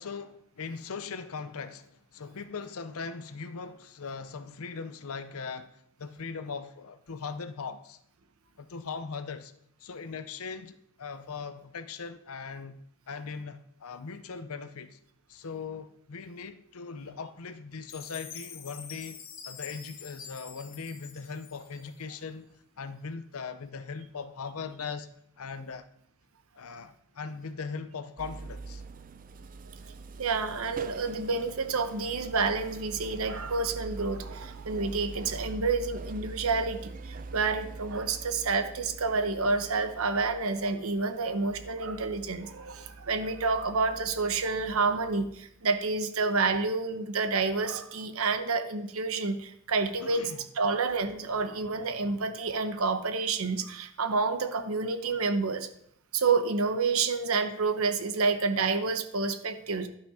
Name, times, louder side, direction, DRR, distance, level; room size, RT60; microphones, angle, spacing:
voice 1, 0.0-8.0 8.6-9.5 9.8-12.8 13.1-15.0 15.3-25.1 25.4-25.9 26.6-28.8 50.0-50.5, left 5 dB, 75° left, 0.7 m, -40 dB
Chime, 17.9-22.1, left 7 dB, 60° left, 1.4 m, -46 dB
sound 1, 28.2-44.8, right 3 dB, 35° right, 0.4 m, -44 dB
voice 2, 30.2-50.3 50.6-55.7 56.1-59.9, right 4 dB, 70° right, 0.9 m, -29 dB
11.5 x 5.8 x 4.9 m
head